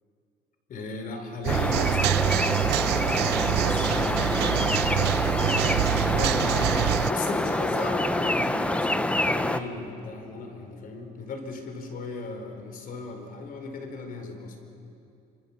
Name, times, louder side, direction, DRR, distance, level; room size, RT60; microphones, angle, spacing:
voice 1, 0.7-2.3 3.5-4.7 5.9-14.5, left 3 dB, 55° left, 5 dB, 4.4 m, -36 dB
sound 1, 1.4-7.1, right 17 dB, 80° right, 0.5 m, -26 dB
sound 2, 1.5-9.6, left 1 dB, 5° left, 0.9 m, -26 dB
26.5 x 26.0 x 7.3 m, 2.7 s
cardioid pair, 110°, 17 cm